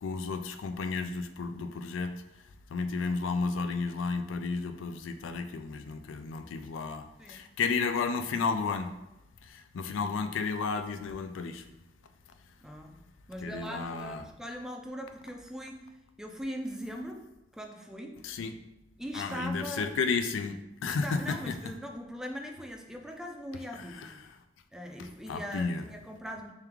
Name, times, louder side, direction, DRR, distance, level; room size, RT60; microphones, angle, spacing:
voice 1, 0.0-2.1 2.7-7.0 7.3-8.9 9.5-11.6 13.4-14.2 18.2-18.5 19.1-20.6 20.8-21.6 23.8-24.1 25.0-25.8, left 4 dB, 85° left, 9 dB, 0.4 m, -32 dB
voice 2, 12.6-13.0 13.3-15.8 16.2-17.2 17.5-18.2 19.0-19.9 21.0-24.2 24.7-26.5, equal, 5° right, 3 dB, 0.3 m, -40 dB
3.4 x 3.2 x 3.5 m, 0.95 s
head